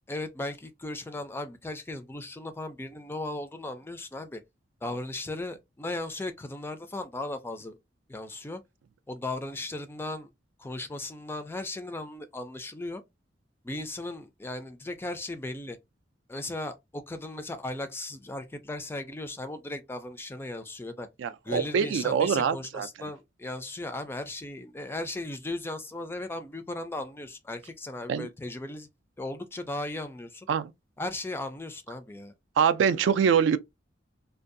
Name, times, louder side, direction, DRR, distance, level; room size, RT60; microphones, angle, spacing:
voice 1, 0.1-4.4 4.8-7.8 8.1-8.6 9.1-10.3 10.6-13.0 13.6-15.8 16.3-21.1 21.4-28.9 29.2-30.5 31.0-32.3, left 2 dB, 10° left, 0.3 m, -36 dB
voice 2, 21.2-23.1 28.1-28.3 30.5-30.7 32.6-33.6, right 7 dB, 70° right, 0.3 m, -24 dB
2.6 x 2.2 x 2.5 m
head